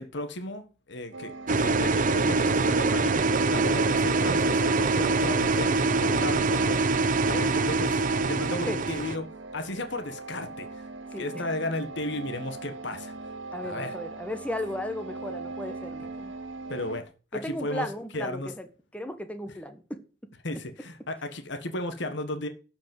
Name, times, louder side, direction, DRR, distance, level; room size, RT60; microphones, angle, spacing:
voice 1, 0.0-8.0 8.3-9.3 9.5-10.8 11.2-13.1 13.6-13.9 16.7-17.0 17.4-17.9 18.1-18.5 20.4-22.5, left 2 dB, 65° left, 9 dB, 1.3 m, -34 dB
sound 1, 1.1-17.0, right 3 dB, 70° right, 1.2 m, -40 dB
sound 2, 1.5-9.2, right 3 dB, 45° right, 0.7 m, -24 dB
voice 2, 7.3-7.8 8.5-8.8 11.1-11.5 13.5-16.3 17.3-18.7 18.9-20.0, left 1 dB, 5° left, 8 dB, 1.2 m, -36 dB
12.0 x 5.2 x 7.7 m, 0.36 s
head